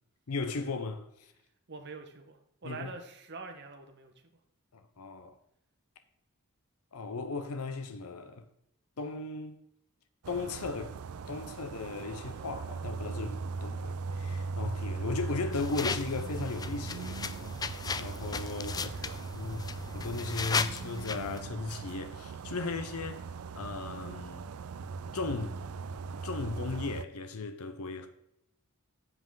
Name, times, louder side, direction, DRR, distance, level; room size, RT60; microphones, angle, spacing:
voice 1, 0.3-1.1 2.6-2.9 4.7-5.4 6.9-8.4 9.0-9.6 10.3-11.0 11.3-18.9 19.3-19.7 19.9-23.2 23.5-24.4 25.1-25.6 26.2-28.1, left 3 dB, 90° left, 0.7 m, -36 dB
voice 2, 1.7-4.1 18.7-19.2, right 4 dB, 50° right, 1.2 m, -45 dB
sound 1, 10.2-27.0, right 4 dB, 80° right, 0.4 m, -39 dB
sound 2, 15.5-21.4, left 5 dB, 20° left, 0.3 m, -37 dB
7.7 x 7.5 x 3.8 m
head